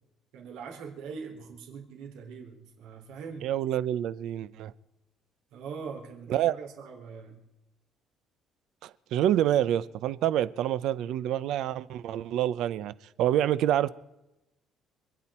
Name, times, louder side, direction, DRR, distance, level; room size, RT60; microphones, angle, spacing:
voice 1, 0.3-3.5 5.5-7.4, right 5 dB, 80° right, 3.8 m, -42 dB
voice 2, 3.4-4.7 6.3-6.6 8.8-13.9, right 11 dB, 65° right, 0.7 m, -27 dB
27.0 x 10.5 x 4.4 m
cardioid pair, 170°, 0 cm